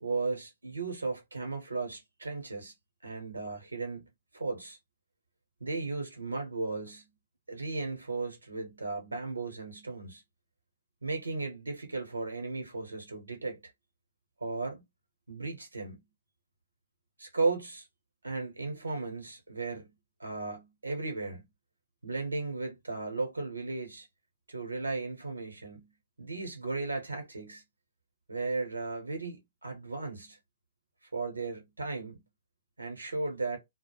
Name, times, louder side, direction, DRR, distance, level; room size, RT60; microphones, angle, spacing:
voice 1, 0.0-2.7 3.0-4.1 4.3-4.8 5.6-7.0 7.5-10.2 11.0-13.6 14.4-14.8 15.3-16.0 17.2-17.9 18.2-19.9 20.2-21.4 22.0-24.1 24.5-25.9 26.2-27.6 28.3-30.4 31.1-32.2 32.8-33.6, right 3 dB, 85° right, 0.9 m, -35 dB
2.2 x 2.0 x 3.0 m
figure-of-eight pair, 120°, 0 cm